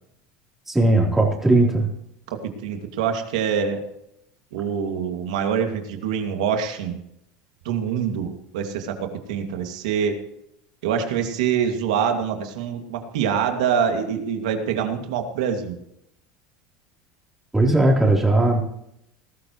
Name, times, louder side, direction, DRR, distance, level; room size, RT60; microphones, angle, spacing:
voice 1, 0.7-1.9 17.5-18.6, right 2 dB, 10° right, -2 dB, 3.7 m, -18 dB
voice 2, 2.3-3.8 4.5-7.0 7.6-10.2 10.8-15.8, right 7 dB, 90° right, 4 dB, 2.4 m, -25 dB
20.0 x 13.5 x 3.2 m, 0.78 s
supercardioid pair, 125°, 4 cm